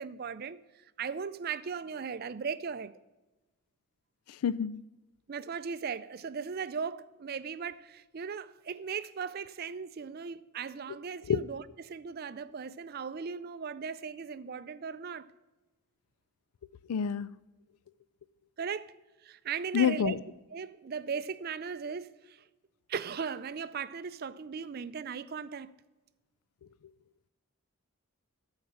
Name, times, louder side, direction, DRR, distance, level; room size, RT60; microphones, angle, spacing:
voice 1, 0.0-2.9 5.3-15.3 18.6-18.9 19.2-20.1 20.5-22.5 22.9-25.7, right 6 dB, 45° right, 0.4 m, -38 dB
voice 2, 4.3-4.8 11.3-11.4 16.9-17.3 19.7-20.2, left 7 dB, 85° left, 0.4 m, -28 dB
13.0 x 4.9 x 7.8 m
head